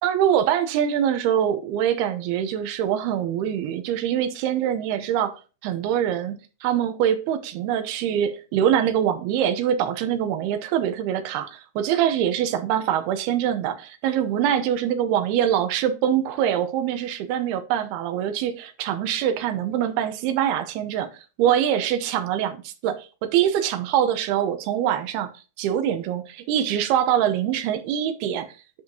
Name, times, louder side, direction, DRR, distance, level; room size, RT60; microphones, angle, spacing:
voice 1, 0.0-25.3 25.6-28.5, right 10 dB, 75° right, 2.7 m, -24 dB
10.5 x 5.6 x 2.9 m
omnidirectional pair, 4.8 m